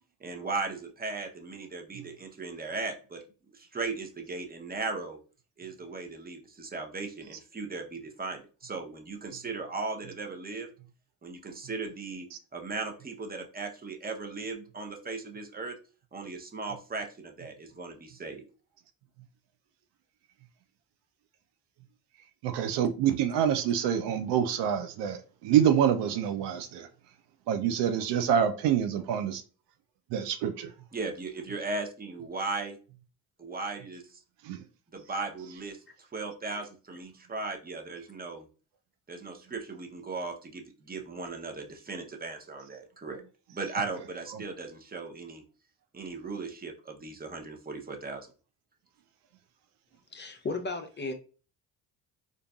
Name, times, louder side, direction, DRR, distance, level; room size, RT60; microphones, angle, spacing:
voice 1, 0.2-3.2 3.5-5.2 5.6-10.7 11.2-15.8 16.1-18.4 30.9-32.8 33.4-34.2 34.9-35.8 36.1-38.5 39.1-43.2 43.5-45.4 45.9-48.3, right 3 dB, 20° right, 0.7 m, -37 dB
voice 2, 22.4-26.9 27.5-29.4 30.1-30.7 34.4-34.6, right 9 dB, 80° right, 0.6 m, -26 dB
voice 3, 50.1-51.1, left 3 dB, 25° left, 0.6 m, -34 dB
3.8 x 2.6 x 2.3 m
supercardioid pair, 65°, 41 cm